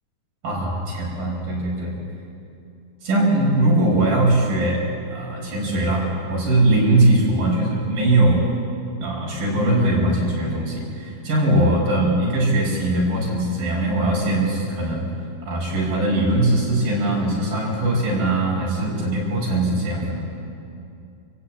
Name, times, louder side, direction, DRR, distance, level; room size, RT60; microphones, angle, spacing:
voice 1, 0.4-2.0 3.0-4.8 5.1-8.4 9.0-15.1 15.5-20.3, right 1 dB, 80° right, -4 dB, 6.8 m, -20 dB
27.5 x 16.5 x 8.6 m, 2.6 s
omnidirectional pair, 4.0 m